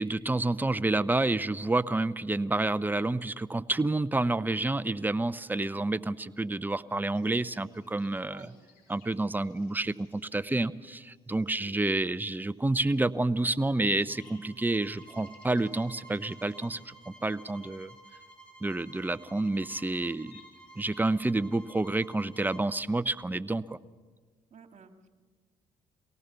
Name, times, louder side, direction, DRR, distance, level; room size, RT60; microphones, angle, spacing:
voice 1, 0.0-8.5 8.9-17.9 18.6-20.4 20.8-23.8, right 2 dB, 10° right, 15 dB, 0.7 m, -29 dB
sound 1, 7.1-21.0, left 6 dB, 85° left, 4.7 m, -65 dB
voice 2, 11.4-11.8 24.5-25.1, right 6 dB, 50° right, 6 dB, 2.1 m, -53 dB
sound 2, 14.1-22.7, right 2 dB, 5° left, 4.7 m, -53 dB
23.5 x 18.0 x 6.9 m, 1.5 s
supercardioid pair, 55°, 15 cm